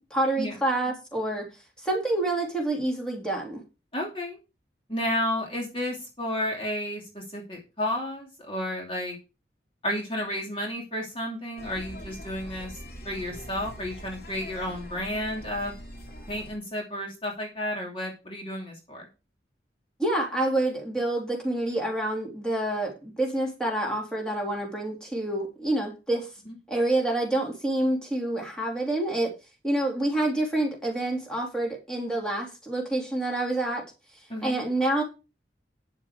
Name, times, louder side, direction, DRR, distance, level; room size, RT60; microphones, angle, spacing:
voice 1, 0.1-1.5 1.8-3.6 20.0-26.3 26.7-29.3 29.6-33.8 34.4-35.0, right 1 dB, 5° left, -1 dB, 3.4 m, -27 dB
voice 2, 3.9-4.4 4.9-9.1 9.8-12.8 13.0-15.7 16.3-19.1 26.5-26.6 34.3-34.6, left 1 dB, 30° left, -1 dB, 2.8 m, -32 dB
sound 1, 11.6-16.6, equal, 55° left, 3.5 m, -42 dB
10.0 x 7.4 x 5.0 m, 0.29 s
head